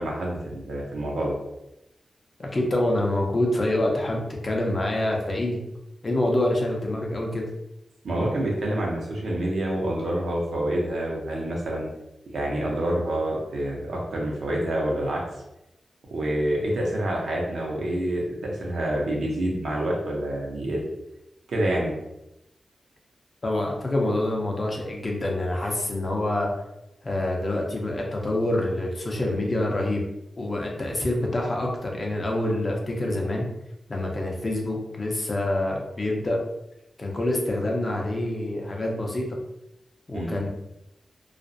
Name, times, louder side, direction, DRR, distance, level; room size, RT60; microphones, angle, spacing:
voice 1, 0.0-1.3 8.0-11.9 12.3-15.2 16.1-20.8 21.5-21.9 40.1-40.4, right 1 dB, 85° right, -2 dB, 0.7 m, -27 dB
voice 2, 2.4-5.6 6.0-7.5 23.4-26.5 27.0-30.0 30.4-33.5 33.9-36.4 37.0-39.4 40.1-40.5, left 1 dB, 40° left, 0 dB, 0.5 m, -26 dB
2.4 x 2.0 x 2.5 m, 0.88 s
cardioid pair, 75°, 0 cm